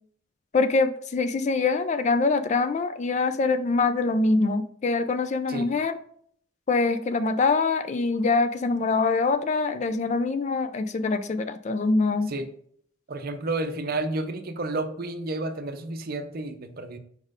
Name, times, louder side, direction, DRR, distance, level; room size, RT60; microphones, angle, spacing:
voice 1, 0.5-6.0 6.7-12.3, left 3 dB, 35° left, 10 dB, 0.3 m, -24 dB
voice 2, 13.1-17.0, right 2 dB, 50° right, 8 dB, 0.6 m, -31 dB
4.9 x 4.2 x 4.9 m, 0.63 s
head